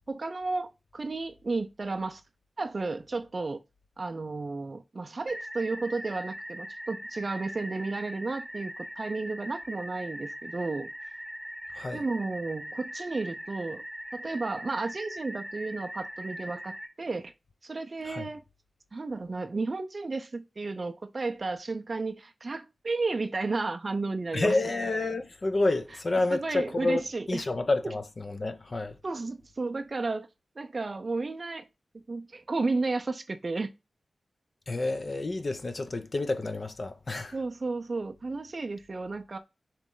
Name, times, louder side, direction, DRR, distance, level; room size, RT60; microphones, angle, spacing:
voice 1, 0.1-2.2 2.6-3.6 4.0-10.9 11.9-13.8 14.1-17.3 17.6-18.4 18.9-24.6 26.3-27.5 27.8-27.9 29.0-30.3 30.6-31.7 31.9-33.7 37.3-39.4, right 3 dB, 45° right, 0.4 m, -33 dB
sound 1, 5.3-16.9, equal, 5° right, 0.8 m, -41 dB
voice 2, 24.3-27.0 27.3-29.0 34.7-37.4, left 2 dB, 45° left, 0.5 m, -29 dB
4.2 x 3.0 x 3.7 m
wide cardioid pair, 105°, 0 cm